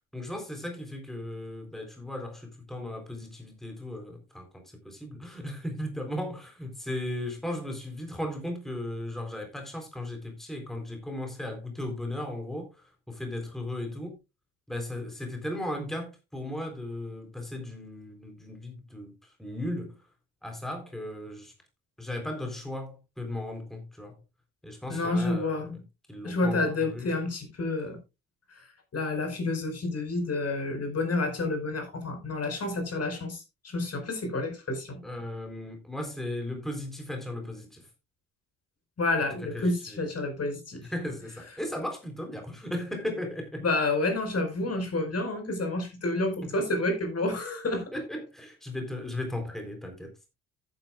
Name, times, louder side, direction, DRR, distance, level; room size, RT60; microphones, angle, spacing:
voice 1, 0.1-14.2 14.7-19.9 20.4-21.5 22.0-24.2 24.6-25.6 26.1-27.1 35.0-37.9 39.2-40.0 40.9-43.6 46.4-46.5 47.7-50.1, left 1 dB, ahead, 3.7 m, -36 dB
voice 2, 24.9-25.7 26.2-28.0 28.5-35.0 39.0-40.8 43.6-47.8, left 2 dB, 40° left, 4.9 m, -29 dB
14.5 x 9.5 x 2.4 m
figure-of-eight pair, 50°, 40 cm